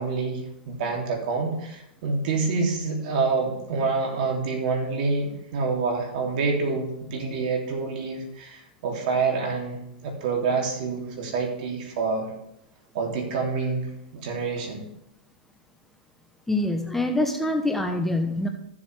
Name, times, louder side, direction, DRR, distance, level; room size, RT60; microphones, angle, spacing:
voice 1, 0.0-12.3 12.9-14.8, right 4 dB, 60° right, 1 dB, 2.8 m, -27 dB
voice 2, 16.5-18.5, left 1 dB, 5° left, 4 dB, 0.9 m, -25 dB
14.5 x 7.3 x 3.4 m, 0.80 s
hypercardioid pair, 115°, 5 cm